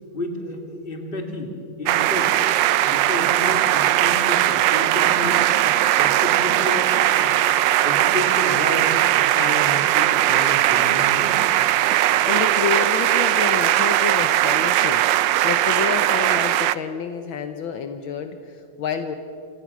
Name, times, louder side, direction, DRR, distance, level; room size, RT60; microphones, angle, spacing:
voice 1, 0.1-1.5 1.8-2.3 2.8-7.6 7.8-11.4, left 1 dB, 25° left, 3 dB, 2.5 m, -31 dB
sound 1, 1.9-16.7, right 13 dB, 70° right, 1.2 m, -19 dB
voice 2, 11.9-19.1, left 7 dB, 70° left, 7 dB, 1.6 m, -29 dB
27.0 x 17.5 x 6.1 m, 2.7 s
omnidirectional pair, 2.4 m